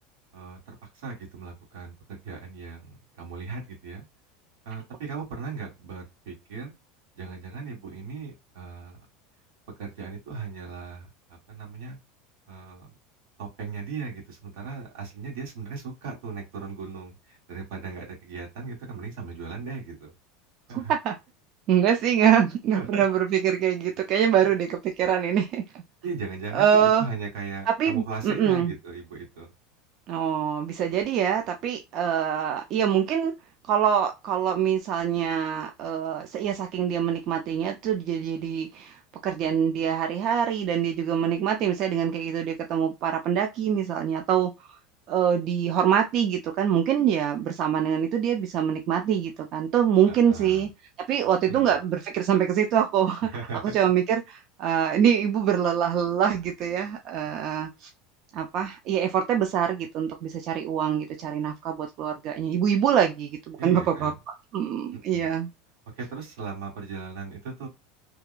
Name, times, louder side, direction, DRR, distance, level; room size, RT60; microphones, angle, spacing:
voice 1, 0.3-4.0 4.6-6.7 7.1-9.1 9.8-12.0 12.5-12.9 13.4-20.1 20.7-20.9 22.7-23.0 24.3-24.5 26.0-29.5 50.1-50.7 51.2-51.8 53.3-53.8 63.5-64.1 64.9-65.3 65.9-67.7, right 5 dB, 80° right, 1.7 m, -38 dB
voice 2, 20.7-21.2 21.7-25.8 26.5-27.1 27.8-28.7 30.1-33.3 33.7-44.5 45.1-50.7 51.1-53.3 53.7-57.9 58.3-64.1 64.5-65.5, right 9 dB, 45° right, 0.3 m, -24 dB
2.8 x 2.2 x 2.3 m
supercardioid pair, 150°, 0 cm